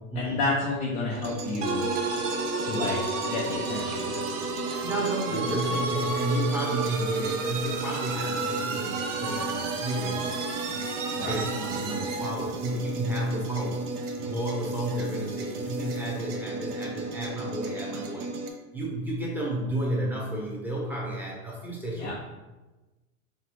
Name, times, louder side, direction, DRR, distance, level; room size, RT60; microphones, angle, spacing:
voice 1, 0.1-1.9 2.6-4.5 5.4-5.5 11.1-11.4 21.9-22.1, left 3 dB, 20° left, -3 dB, 0.3 m, -31 dB
sound 1, 1.1-18.5, right 2 dB, 30° right, 0.5 m, -35 dB
sound 2, 1.6-12.4, right 4 dB, 60° right, 0.9 m, -32 dB
voice 2, 4.8-10.9 11.2-18.3 18.7-22.1, right 1 dB, 5° right, -4 dB, 0.8 m, -32 dB
4.0 x 3.5 x 3.1 m, 1.1 s
hypercardioid pair, 125°, 42 cm